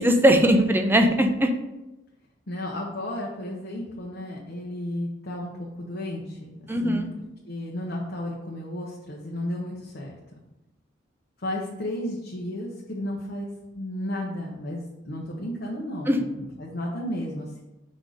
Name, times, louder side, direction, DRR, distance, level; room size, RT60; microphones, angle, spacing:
voice 1, 0.0-1.5 6.7-7.1 16.1-16.2, equal, 10° right, 5 dB, 0.5 m, -20 dB
voice 2, 2.5-7.0 7.5-10.1 11.4-13.5 13.7-16.1 16.4-17.6, left 1 dB, 60° left, -2 dB, 0.9 m, -33 dB
5.3 x 4.0 x 4.8 m, 0.97 s
head